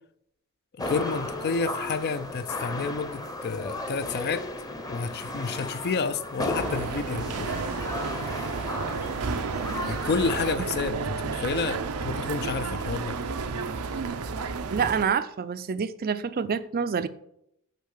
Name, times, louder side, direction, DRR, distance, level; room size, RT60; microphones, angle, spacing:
voice 1, 0.7-4.4 4.9-7.5 9.8-13.2, left 4 dB, 50° left, 0.5 m, -30 dB
sound 1, 0.8-10.6, left 1 dB, 15° left, 0.8 m, -35 dB
sound 2, 6.5-15.0, right 4 dB, 85° right, 0.6 m, -31 dB
voice 2, 14.7-17.1, right 6 dB, 45° right, 0.4 m, -27 dB
6.6 x 5.5 x 6.5 m
head